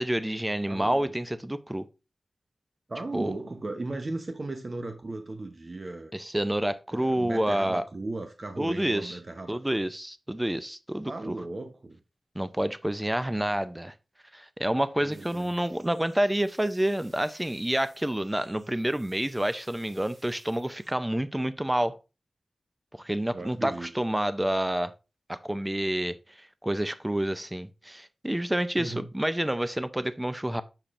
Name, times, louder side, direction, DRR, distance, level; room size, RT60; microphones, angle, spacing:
voice 1, 0.0-1.9 3.1-3.3 6.1-7.8 8.6-9.2 9.5-11.3 12.4-13.9 14.3-22.0 23.0-24.9 25.3-26.1 26.6-30.6, right 1 dB, 10° right, 0.5 m, -28 dB
voice 2, 0.7-1.1 2.9-6.1 6.9-9.6 11.1-12.0 15.0-15.6 23.3-23.9 28.8-29.1, right 2 dB, 45° right, 0.9 m, -36 dB
sound 1, 15.1-20.9, right 1 dB, 65° right, 3.5 m, -59 dB
6.9 x 5.7 x 2.5 m
wide cardioid pair, 75°, 0 cm